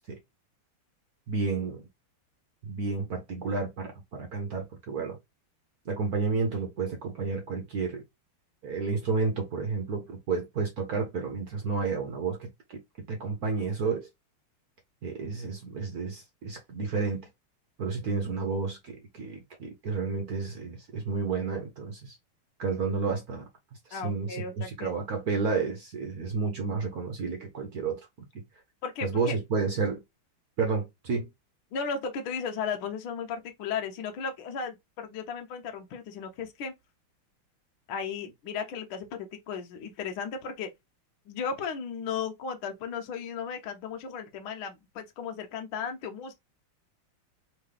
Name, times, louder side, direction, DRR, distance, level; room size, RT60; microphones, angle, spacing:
voice 1, 1.3-1.8 2.6-5.2 5.8-8.0 8.6-12.8 13.1-14.1 15.0-17.3 17.8-22.2 22.6-23.4 23.9-28.3 29.0-30.0 30.6-31.3, right 4 dB, 55° right, 1.2 m, -31 dB
voice 2, 23.9-24.9 28.8-29.4 31.7-36.7 37.9-40.7 41.3-46.3, left 6 dB, 70° left, 1.7 m, -35 dB
3.7 x 3.7 x 3.3 m
omnidirectional pair, 2.4 m